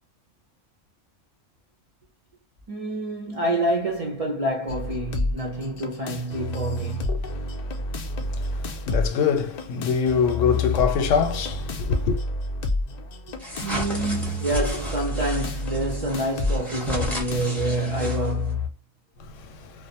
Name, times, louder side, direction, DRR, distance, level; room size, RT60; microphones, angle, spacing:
voice 1, 2.7-7.2 13.6-18.7, right 1 dB, 45° right, 0.5 m, -27 dB
sound 1, 4.7-18.7, left 2 dB, 65° left, 0.4 m, -30 dB
voice 2, 8.4-12.2, left 6 dB, 85° left, 1.0 m, -24 dB
sound 2, 13.4-18.5, left 1 dB, ahead, 0.6 m, -34 dB
2.5 x 2.1 x 2.7 m
omnidirectional pair, 1.3 m